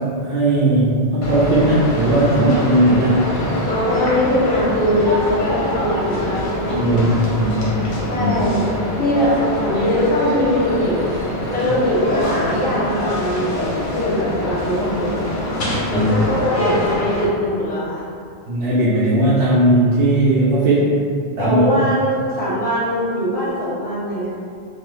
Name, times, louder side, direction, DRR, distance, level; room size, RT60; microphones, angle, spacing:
voice 1, 0.0-3.2 6.6-7.8 8.2-8.3 15.9-16.1 18.5-20.9 21.4-21.8, right 1 dB, 75° right, -9 dB, 0.9 m, -17 dB
sound 1, 1.2-17.2, left 1 dB, 55° left, 0.6 m, -24 dB
voice 2, 3.7-7.2 8.1-8.7 9.0-11.1 11.5-15.2 15.9-18.0 21.4-24.3, equal, 10° left, -9 dB, 0.5 m, -21 dB
3.0 x 2.0 x 3.1 m, 2.3 s
omnidirectional pair, 1.2 m